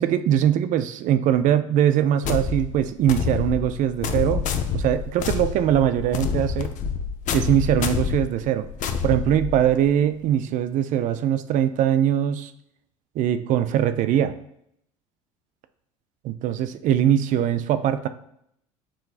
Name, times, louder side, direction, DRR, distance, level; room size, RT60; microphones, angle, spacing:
voice 1, 0.0-4.5 4.7-6.7 7.3-8.7 9.0-12.5 13.2-14.3 16.3-18.1, right 10 dB, 50° right, 11 dB, 0.4 m, -21 dB
sound 1, 2.2-9.9, left 6 dB, 50° left, 0.5 m, -28 dB
6.0 x 3.2 x 2.4 m, 0.73 s
hypercardioid pair, 65°, 17 cm